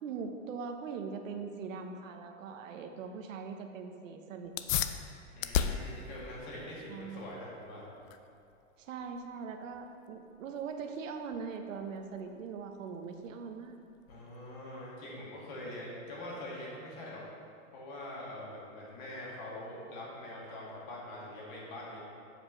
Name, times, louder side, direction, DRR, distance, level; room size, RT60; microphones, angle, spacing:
voice 1, 0.0-4.5 6.9-7.2 8.8-13.8, right 5 dB, 85° right, 5 dB, 1.0 m, -41 dB
sound 1, 4.4-14.5, left 9 dB, 85° left, 0.6 m, -39 dB
voice 2, 5.3-7.9 14.1-17.2 17.7-22.0, left 1 dB, 40° left, -4 dB, 2.2 m, -44 dB
7.9 x 5.0 x 6.3 m, 2.5 s
supercardioid pair, 175°, 38 cm